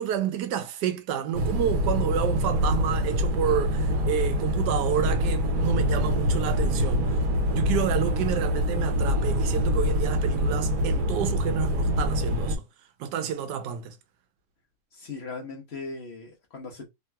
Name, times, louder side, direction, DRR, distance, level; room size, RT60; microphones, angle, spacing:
voice 1, 0.0-7.2 7.5-12.6 13.0-14.0, right 9 dB, 90° right, 1.2 m, -29 dB
sound 1, 1.3-12.6, equal, 60° right, 1.2 m, -25 dB
voice 2, 14.9-16.9, left 4 dB, 45° left, 1.0 m, -38 dB
3.3 x 2.8 x 2.2 m
omnidirectional pair, 1.7 m